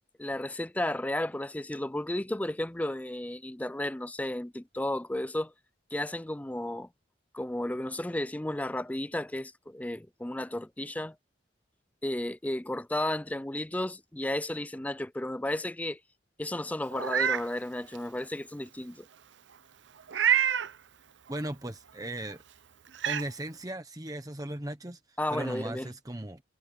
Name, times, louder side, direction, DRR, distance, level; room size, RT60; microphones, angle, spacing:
voice 1, 0.2-5.5 5.9-6.9 7.3-11.2 12.0-16.0 16.4-19.1 25.2-25.9, left 1 dB, 10° left, 0.4 m, -33 dB
Meow, 16.9-17.4 17.9-18.0 20.1-20.7 22.3-22.4 22.9-23.2, right 8 dB, 75° right, 0.7 m, -26 dB
voice 2, 21.3-22.4 23.1-25.0 25.3-26.4, right 1 dB, 20° right, 1.2 m, -37 dB
head